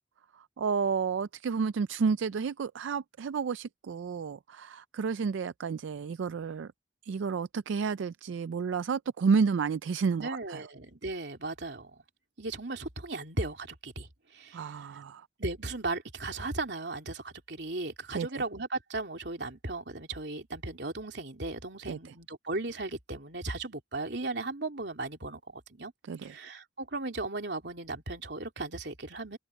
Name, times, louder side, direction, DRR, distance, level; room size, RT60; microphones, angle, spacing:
voice 1, 0.6-6.7 7.1-10.6 14.5-15.2 18.1-18.3 21.9-22.0 26.0-26.3, right 5 dB, 90° right, 0.4 m, -30 dB
voice 2, 10.2-11.9 12.4-14.7 15.4-25.9 26.2-29.4, right 2 dB, 65° right, 3.0 m, -36 dB
head